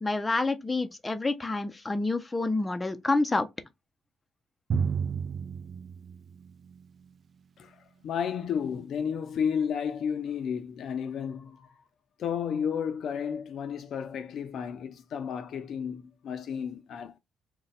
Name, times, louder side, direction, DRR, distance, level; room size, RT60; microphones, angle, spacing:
voice 1, 0.0-3.5, left 2 dB, 20° left, 0.5 m, -28 dB
Drum, 4.7-7.1, right 6 dB, 50° right, 0.4 m, -32 dB
voice 2, 8.0-11.7 12.2-17.2, left 7 dB, 70° left, 0.5 m, -32 dB
2.6 x 2.2 x 4.0 m
cardioid pair, 90°, 0 cm